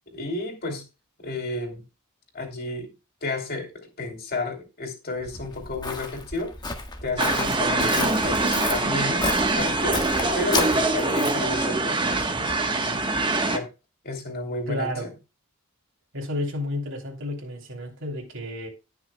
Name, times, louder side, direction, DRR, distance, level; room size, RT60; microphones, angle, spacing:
voice 1, 0.1-0.8 1.2-1.8 2.3-2.9 3.2-6.5 7.0-9.3 9.5-10.0 10.3-13.1 13.5-13.7 14.0-15.1, left 2 dB, 45° left, 3.0 m, -32 dB
Walk footsteps, 5.2-11.5, left 3 dB, 20° left, 1.4 m, -31 dB
sound 1, 7.2-13.6, right 2 dB, 20° right, 1.1 m, -24 dB
voice 2, 14.7-15.1 16.1-18.7, left 1 dB, 55° right, 3.0 m, -31 dB
18.0 x 6.1 x 2.2 m
head